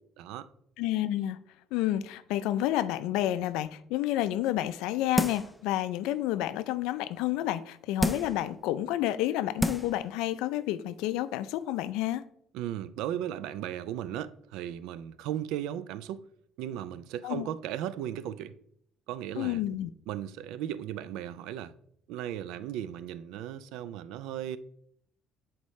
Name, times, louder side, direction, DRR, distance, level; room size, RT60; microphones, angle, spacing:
voice 1, 0.2-0.5 12.5-16.2 16.6-18.5 19.1-19.6 20.1-21.7 22.1-24.6, right 11 dB, 85° right, 0.3 m, -36 dB
voice 2, 0.8-1.4 1.7-12.2 17.2-17.5 19.4-19.9, left 13 dB, 90° left, 0.4 m, -30 dB
sound 1, 5.2-5.6 6.1-6.2 8.0-8.4 9.1-9.2 9.6-10.0 10.4-10.5, left 1 dB, 5° left, 0.3 m, -29 dB
8.0 x 4.3 x 3.1 m
cardioid pair, 135°, 0 cm